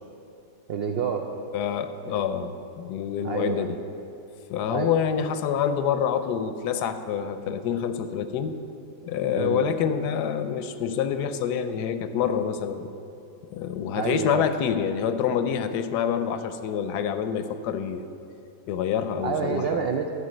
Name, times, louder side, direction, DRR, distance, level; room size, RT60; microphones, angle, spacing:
voice 1, 0.7-1.3 2.2-2.3 3.2-3.7 4.7-5.0 9.3-9.7 13.9-14.5 19.2-20.1, right 6 dB, 90° right, 4 dB, 0.5 m, -28 dB
voice 2, 1.5-3.8 4.5-8.6 9.0-12.9 13.5-18.1 18.7-19.8, left 8 dB, 80° left, 10 dB, 1.2 m, -27 dB
12.0 x 4.9 x 7.7 m, 2.7 s
omnidirectional pair, 1.7 m